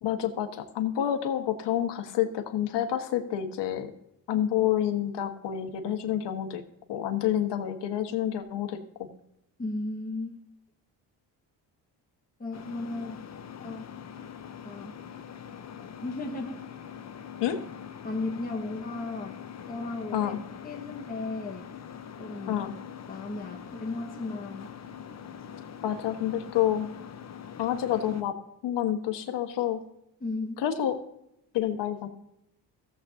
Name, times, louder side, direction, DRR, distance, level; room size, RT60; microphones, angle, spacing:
voice 1, 0.0-3.9 4.3-6.6 6.9-9.1 17.4-17.6 20.1-20.4 22.5-22.7 25.8-26.9 27.6-28.3 28.6-29.8 30.6-30.9 31.5-32.1, left 11 dB, 75° left, 6 dB, 1.5 m, -28 dB
voice 2, 9.6-10.4 12.4-13.2 13.6-13.8 14.6-14.9 16.0-16.6 18.0-19.4 19.7-20.3 20.6-21.7 22.2-22.6 23.1-24.7 30.2-30.6, left 2 dB, 20° left, -1 dB, 1.4 m, -35 dB
sound 1, 12.5-28.2, left 8 dB, 40° left, 0.9 m, -43 dB
15.5 x 7.9 x 2.7 m, 0.82 s
cardioid pair, 80°, 43 cm